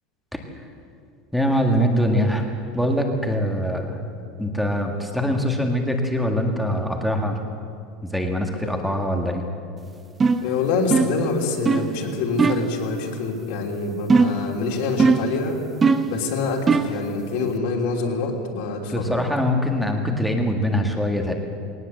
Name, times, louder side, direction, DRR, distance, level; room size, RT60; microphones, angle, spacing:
voice 1, 1.3-4.0 4.4-7.4 8.0-9.5 18.9-21.3, equal, ahead, 2 dB, 1.7 m, -23 dB
sound 1, 10.2-10.5 10.9-11.2 11.7-11.9 12.4-12.7 14.1-14.5 15.0-15.4 15.8-16.2 16.7-17.0, right 4 dB, 15° right, 0.7 m, -19 dB
voice 2, 10.4-15.6 16.1-19.2, left 3 dB, 55° left, 0 dB, 3.2 m, -26 dB
20.0 x 19.0 x 7.8 m, 2.4 s
supercardioid pair, 175°, 0 cm